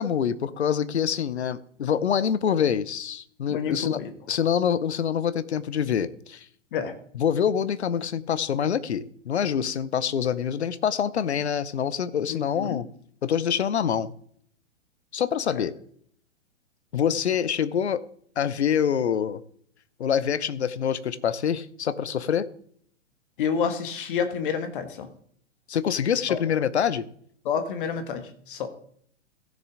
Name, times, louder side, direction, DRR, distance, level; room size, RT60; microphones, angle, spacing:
voice 1, 0.0-4.0 4.3-6.4 7.1-12.9 13.2-14.1 15.1-15.7 16.9-18.0 18.4-19.4 20.0-22.5 25.7-27.1, left 8 dB, 65° left, 16 dB, 0.8 m, -25 dB
voice 2, 3.5-4.1 6.7-6.9 12.3-12.8 15.5-15.6 23.4-25.1 26.3-26.4 27.4-28.7, left 6 dB, 45° left, 8 dB, 1.6 m, -29 dB
15.5 x 6.8 x 3.8 m, 0.63 s
figure-of-eight pair, 110°, 36 cm